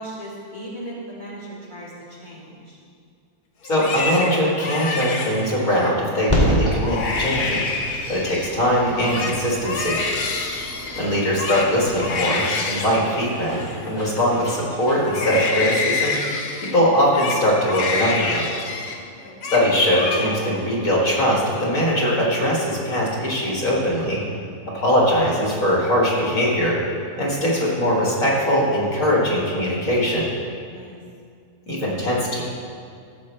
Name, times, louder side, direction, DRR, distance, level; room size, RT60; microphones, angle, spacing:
voice 1, 0.0-2.8 19.0-19.5 30.7-31.0, right 1 dB, 30° right, -7 dB, 2.0 m, -37 dB
Crying sobbing, 3.6-5.9 6.4-6.6 6.8-8.5 8.9-14.6 15.0-19.0 19.2-19.6 19.9-20.6 21.0-21.6, left 3 dB, 75° left, 1.4 m, -27 dB
voice 2, 3.6-7.6 8.1-10.0 11.0-16.2 16.7-18.4 19.5-24.2 24.7-26.8 27.2-30.3 31.7-32.4, equal, 60° left, -4 dB, 2.1 m, -21 dB
sound 1, 6.3-12.0, equal, 10° left, 2.3 m, -27 dB
sound 2, 10.8-15.7, equal, 10° right, 2.5 m, -41 dB
14.0 x 7.3 x 3.2 m, 2.3 s
omnidirectional pair, 1.6 m